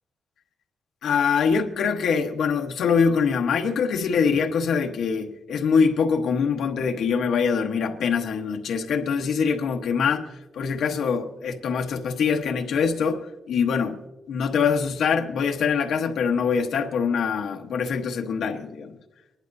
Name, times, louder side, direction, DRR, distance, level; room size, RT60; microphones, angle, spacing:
voice 1, 1.0-10.3 10.5-14.0 14.3-19.0, left 6 dB, 80° left, 1.2 m, -24 dB
24.5 x 11.0 x 2.7 m
wide cardioid pair, 165°, 0 cm